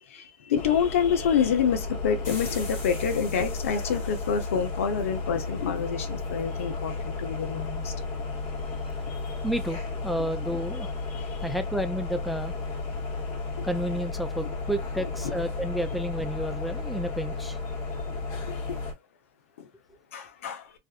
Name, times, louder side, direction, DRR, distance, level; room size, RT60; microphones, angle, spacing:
voice 1, 0.1-7.9 9.1-9.4 11.3-11.4 13.6-13.7 18.4-18.8 19.6-19.7 20.1-20.7, left 7 dB, 85° left, 0.7 m, -27 dB
sound 1, 0.5-18.9, left 3 dB, 45° left, 1.2 m, -33 dB
voice 2, 9.4-10.9 11.4-12.6 13.2-17.6, equal, ahead, 0.4 m, -31 dB
2.5 x 2.5 x 2.4 m
supercardioid pair, 110°, 7 cm